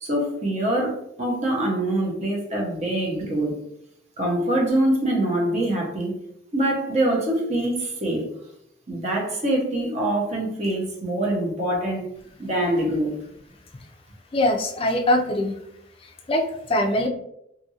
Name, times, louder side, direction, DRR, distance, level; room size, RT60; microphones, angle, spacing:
voice 1, 0.0-3.5 4.2-6.2 6.5-8.3 8.9-12.1 12.4-13.2, right 1 dB, 35° right, -2 dB, 0.8 m, -24 dB
voice 2, 14.3-15.5 16.3-17.1, left 1 dB, 30° left, 3 dB, 0.4 m, -22 dB
2.6 x 2.5 x 2.7 m, 0.76 s
head